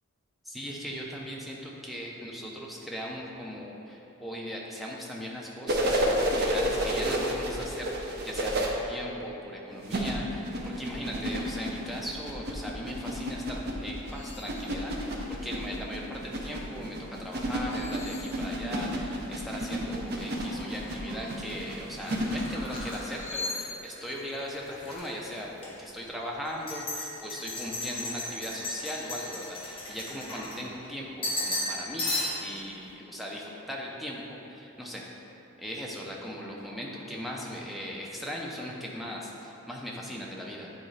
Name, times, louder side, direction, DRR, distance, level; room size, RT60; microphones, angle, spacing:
voice 1, 0.4-32.1 32.4-35.1 35.6-40.7, equal, ahead, -3 dB, 0.5 m, -39 dB
sound 1, 5.7-8.7 9.8-23.2 24.9-25.0, equal, 45° right, 0.6 m, -31 dB
sound 2, 14.0-14.7 15.2-15.8 17.5-19.1 21.8-22.3 23.0-26.5 26.9-27.4 27.9-28.0 28.5-29.3, left 3 dB, 60° left, 0.5 m, -44 dB
sound 3, 20.2-24.1 24.4-25.1 25.6-25.7 26.5-30.9 31.2-31.7 32.0-32.6, left 1 dB, 25° left, 1.2 m, -35 dB
8.8 x 3.8 x 3.2 m, 2.9 s
head